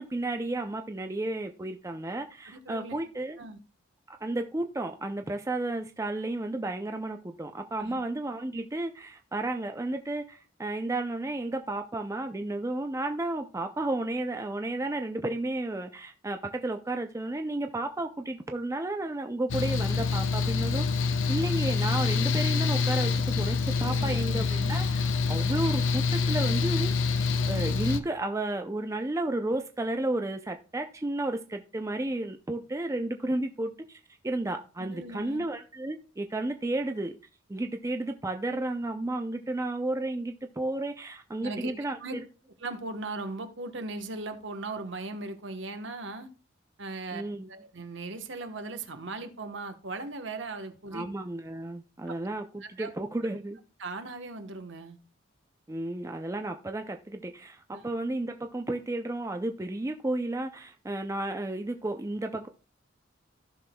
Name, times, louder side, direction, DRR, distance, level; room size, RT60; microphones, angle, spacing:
voice 1, 0.0-3.4 4.1-20.8 21.3-26.9 27.5-37.2 37.5-42.2 47.1-47.5 50.9-53.6 55.7-62.5, right 2 dB, 15° right, 0.4 m, -32 dB
voice 2, 2.5-3.0 3.4-3.6 7.8-8.0 23.8-24.5 34.8-35.4 41.4-41.7 42.0-42.2 42.6-46.3 46.8-47.2 47.5-51.1 52.6-52.9 53.8-55.0 57.7-57.8, right 3 dB, 65° right, 1.1 m, -38 dB
Mechanical fan, 19.5-28.0, left 4 dB, 70° left, 0.6 m, -26 dB
15.0 x 6.0 x 2.2 m
head